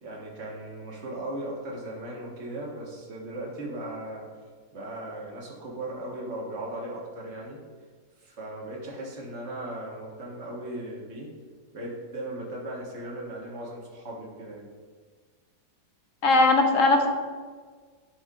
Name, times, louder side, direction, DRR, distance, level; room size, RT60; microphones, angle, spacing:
voice 1, 0.0-4.3 4.7-7.6 8.2-11.3 11.7-14.7, right 1 dB, 40° right, -2 dB, 1.6 m, -37 dB
voice 2, 16.2-17.1, left 2 dB, 55° left, 4 dB, 1.0 m, -19 dB
10.5 x 6.5 x 2.4 m, 1.5 s
omnidirectional pair, 1.9 m